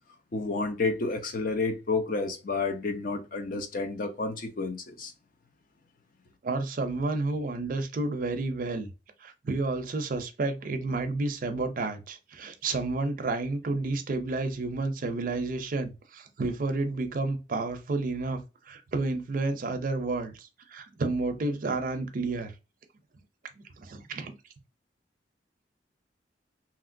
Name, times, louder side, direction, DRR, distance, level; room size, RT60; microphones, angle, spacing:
voice 1, 0.3-5.1, left 3 dB, 50° left, 0.5 m, -30 dB
voice 2, 6.4-8.9 9.2-18.4 18.7-22.5 23.8-24.3, right 3 dB, 50° right, 0.5 m, -30 dB
2.9 x 2.8 x 2.5 m
head